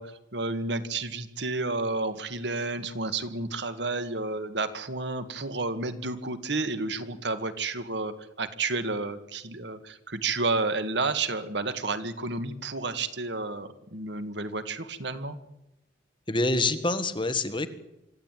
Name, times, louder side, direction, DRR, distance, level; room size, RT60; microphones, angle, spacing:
voice 1, 0.0-15.4, right 3 dB, 65° right, 11 dB, 1.8 m, -31 dB
voice 2, 16.3-17.7, left 2 dB, 25° left, 10 dB, 1.6 m, -26 dB
25.0 x 14.5 x 9.2 m, 0.88 s
head